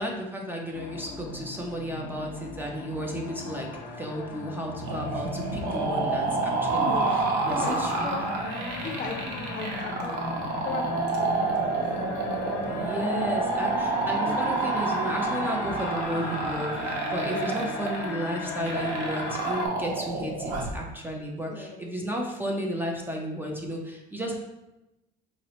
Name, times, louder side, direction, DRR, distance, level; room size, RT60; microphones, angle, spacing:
voice 1, 0.0-8.1 8.7-8.8 12.7-24.4, equal, 10° right, 0 dB, 0.4 m, -33 dB
sound 1, 0.7-19.7, left 4 dB, 90° left, 0.5 m, -37 dB
sound 2, 4.8-20.8, right 3 dB, 90° right, 0.7 m, -29 dB
voice 2, 6.8-8.2 8.8-10.2 10.6-11.9 20.1-20.5 21.4-21.8, left 4 dB, 45° left, 4 dB, 0.5 m, -37 dB
5.1 x 2.0 x 2.8 m, 0.96 s
cardioid pair, 120°, 19 cm